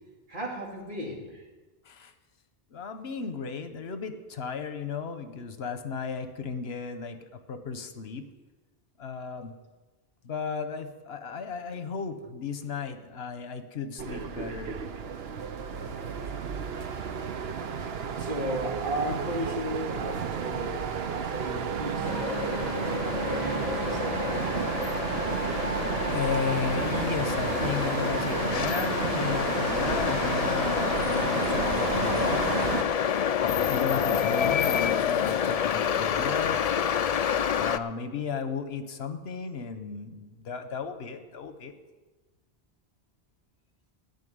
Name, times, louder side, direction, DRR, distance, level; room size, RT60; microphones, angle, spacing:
voice 1, 0.3-1.5 18.1-24.6, equal, 55° right, -2 dB, 2.8 m, -35 dB
voice 2, 2.7-7.2 7.5-8.3 9.0-9.5 10.2-14.8 16.7-16.9 26.0-32.5 33.5-36.8 37.6-41.7, left 6 dB, 80° left, 9 dB, 1.2 m, -35 dB
sound 1, 14.0-32.8, right 6 dB, 80° right, 1.0 m, -31 dB
sound 2, 22.0-37.8, left 8 dB, 55° left, 0.4 m, -28 dB
13.5 x 5.8 x 9.4 m, 1.2 s
omnidirectional pair, 1.0 m